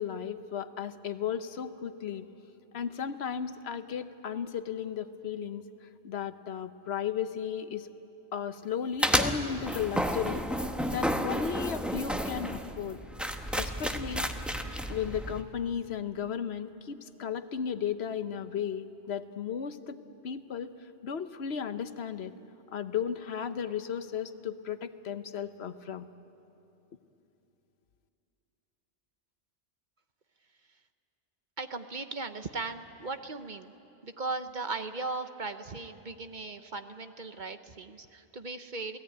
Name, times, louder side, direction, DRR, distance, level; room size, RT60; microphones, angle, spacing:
voice 1, 0.0-2.3 2.7-5.6 6.0-7.9 8.3-10.5 10.9-13.0 13.6-14.3 14.9-20.0 20.2-20.7 21.0-22.3 22.7-26.1, left 8 dB, 65° left, 11 dB, 1.1 m, -35 dB
sound 1, 9.0-15.4, equal, ahead, 1.0 m, -31 dB
voice 2, 31.6-33.7 34.0-39.0, right 3 dB, 45° right, 9 dB, 1.0 m, -37 dB
28.5 x 18.0 x 9.5 m, 2.9 s
omnidirectional pair, 1.2 m